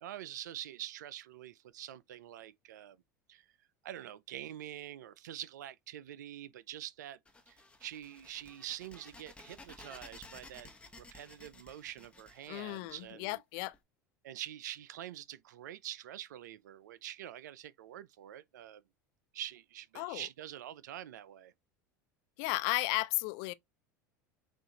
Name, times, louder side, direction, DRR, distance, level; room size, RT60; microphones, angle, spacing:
voice 1, 0.0-3.0 3.3-3.5 3.8-7.2 7.5-10.7 11.0-13.4 14.2-18.8 19.3-21.5, right 12 dB, 75° right, 0.4 m, -46 dB
sound 1, 7.2-13.8, left 2 dB, 10° left, 1.0 m, -55 dB
voice 2, 12.5-13.7 20.0-20.3 22.4-23.5, left 21 dB, 55° left, 0.4 m, -34 dB
6.0 x 2.5 x 2.8 m
hypercardioid pair, 75°, 10 cm